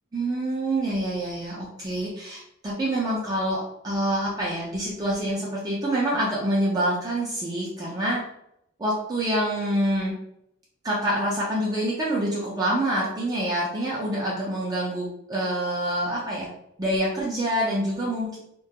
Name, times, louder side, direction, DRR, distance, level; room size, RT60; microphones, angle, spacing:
voice 1, 0.1-8.2 8.8-10.1 10.8-16.5 16.8-18.4, right 1 dB, 20° right, -5 dB, 0.4 m, -26 dB
2.3 x 2.2 x 2.7 m, 0.76 s
head